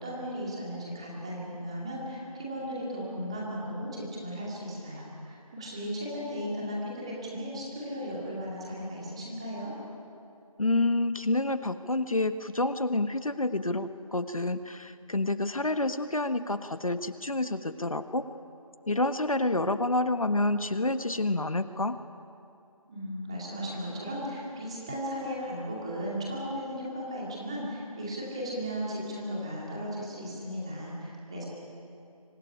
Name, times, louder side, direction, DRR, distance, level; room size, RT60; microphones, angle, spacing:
voice 1, 0.0-9.7 22.9-31.4, equal, 10° right, -5 dB, 2.5 m, -36 dB
voice 2, 10.6-18.2 18.9-22.0, left 2 dB, 65° left, 10 dB, 1.3 m, -28 dB
25.5 x 19.5 x 10.0 m, 2.7 s
figure-of-eight pair, 175°, 19 cm